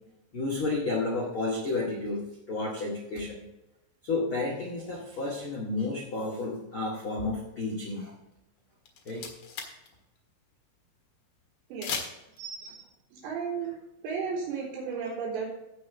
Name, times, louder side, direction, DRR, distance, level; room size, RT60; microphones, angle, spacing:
voice 1, 0.3-3.5 4.0-8.1 9.0-9.2, left 3 dB, 90° left, -3 dB, 1.1 m, -31 dB
sound 1, 8.6-8.7 8.9-9.9 10.2-10.3 11.8-12.4, left 6 dB, 65° left, 2.0 m, -36 dB
voice 2, 11.7-12.1 12.4-13.8 14.0-15.5, right 5 dB, 80° right, -9 dB, 5.7 m, -34 dB
16.0 x 5.7 x 3.6 m, 0.91 s
omnidirectional pair, 5.9 m